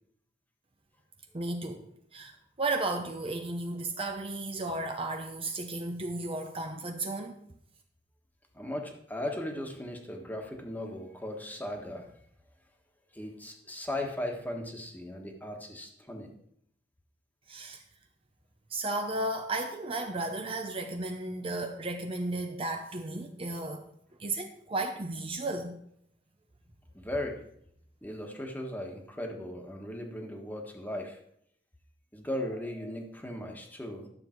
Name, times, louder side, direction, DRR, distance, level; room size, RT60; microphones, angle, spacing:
voice 1, 1.3-1.9 2.1-7.4 17.5-17.8 18.7-23.8 24.2-25.8, right 2 dB, 30° right, 4 dB, 0.8 m, -34 dB
voice 2, 8.5-12.1 13.1-16.3 26.9-27.4 28.0-31.2 32.1-34.1, left 1 dB, 10° left, 2 dB, 1.5 m, -37 dB
12.0 x 7.2 x 4.5 m, 0.70 s
head